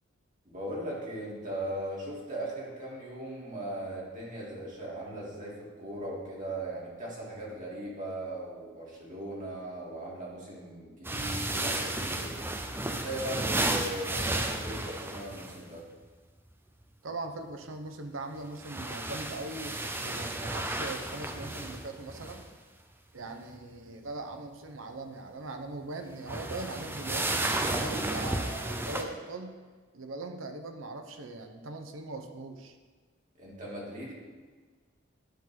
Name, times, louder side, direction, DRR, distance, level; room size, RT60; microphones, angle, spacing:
voice 1, 0.5-12.4 12.8-15.8 33.4-34.1, right 1 dB, 40° right, -5 dB, 2.3 m, -38 dB
sound 1, 11.0-15.6 18.4-22.5 26.1-29.0, right 2 dB, 10° right, 0.5 m, -33 dB
voice 2, 17.0-22.4 23.1-29.6 29.9-32.8, right 2 dB, 75° right, 6 dB, 0.8 m, -40 dB
10.5 x 3.8 x 5.9 m, 1.5 s
head